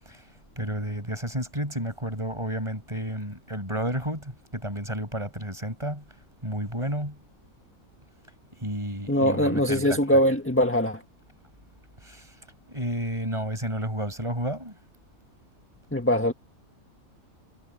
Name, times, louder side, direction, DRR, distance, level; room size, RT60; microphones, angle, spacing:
voice 1, 0.6-6.0 6.4-7.2 8.6-10.2 12.0-12.3 12.7-14.7, equal, 20° right, 6.3 m, -31 dB
voice 2, 9.1-11.0 15.9-16.3, equal, 10° left, 1.7 m, -22 dB
omnidirectional pair, 1.6 m